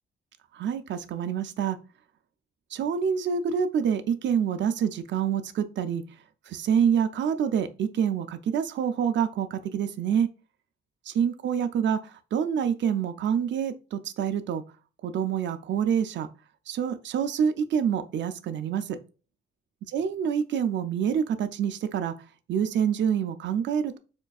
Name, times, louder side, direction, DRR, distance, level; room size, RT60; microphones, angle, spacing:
voice 1, 0.5-1.8 2.7-6.0 6.5-10.3 11.1-14.6 15.0-16.3 16.7-19.0 19.9-22.1 22.5-24.0, right 8 dB, 65° right, 0.4 m, -27 dB
4.4 x 2.4 x 2.3 m
cardioid pair, 105°, 20 cm